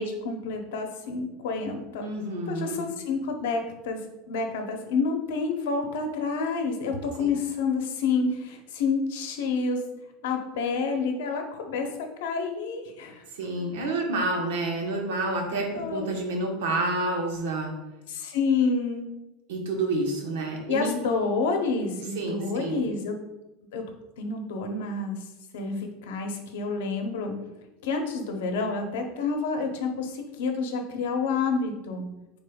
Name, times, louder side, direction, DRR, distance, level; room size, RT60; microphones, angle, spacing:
voice 1, 0.0-2.1 2.5-4.0 4.3-9.8 10.2-13.2 15.7-16.1 18.1-19.1 20.7-23.1 23.7-23.8 24.2-25.2 25.5-27.3 27.8-32.0, left 4 dB, 80° left, 4 dB, 0.8 m, -28 dB
voice 2, 2.0-2.8 7.2-7.3 13.3-17.7 19.5-20.9 22.1-22.9, right 2 dB, 85° right, 1 dB, 1.1 m, -29 dB
5.1 x 4.1 x 2.3 m, 0.97 s
supercardioid pair, 175°, 0 cm